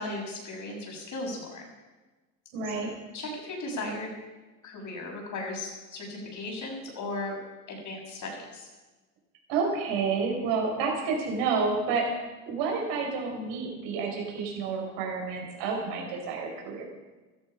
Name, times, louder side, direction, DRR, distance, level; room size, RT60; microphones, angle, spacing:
voice 1, 0.0-1.6 2.6-2.9 3.1-4.1 4.6-7.4 7.7-8.7, left 2 dB, 45° left, 0 dB, 6.6 m, -36 dB
voice 2, 2.5-2.9 9.5-12.1 12.5-16.8, right 5 dB, 70° right, 0 dB, 5.5 m, -29 dB
15.0 x 14.0 x 5.7 m, 1.2 s
supercardioid pair, 100°, 43 cm